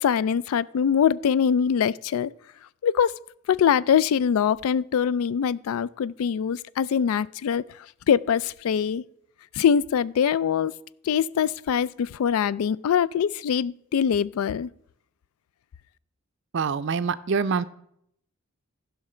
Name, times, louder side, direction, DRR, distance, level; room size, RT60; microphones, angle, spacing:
voice 1, 0.0-2.3 2.8-3.1 3.5-7.6 8.1-9.0 9.5-10.7 11.0-14.7, left 8 dB, 85° left, 0.3 m, -23 dB
voice 2, 16.5-17.6, right 5 dB, 55° right, 0.4 m, -25 dB
15.0 x 5.8 x 4.3 m
head